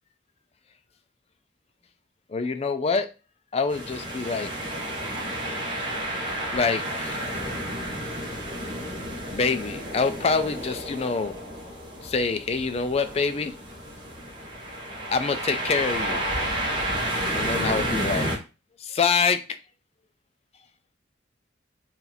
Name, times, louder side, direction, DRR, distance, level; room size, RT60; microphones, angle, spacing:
voice 1, 2.3-3.1 3.5-4.5 6.5-7.3 9.3-11.3 12.0-13.5 15.1-16.2 17.0-18.3 18.8-19.4, left 5 dB, 35° left, 9 dB, 0.4 m, -26 dB
sound 1, 3.7-18.4, right 1 dB, 25° right, 0.8 m, -31 dB
2.9 x 2.6 x 3.9 m, 0.31 s
head